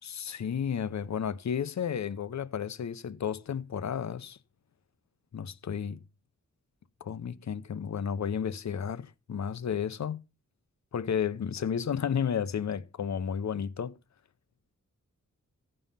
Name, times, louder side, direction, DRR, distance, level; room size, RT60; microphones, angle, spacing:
voice 1, 0.0-4.4 5.3-6.0 7.0-10.2 10.9-14.0, left 7 dB, 65° left, 0.7 m, -32 dB
15.5 x 5.5 x 5.6 m
wide cardioid pair, 125°, 30 cm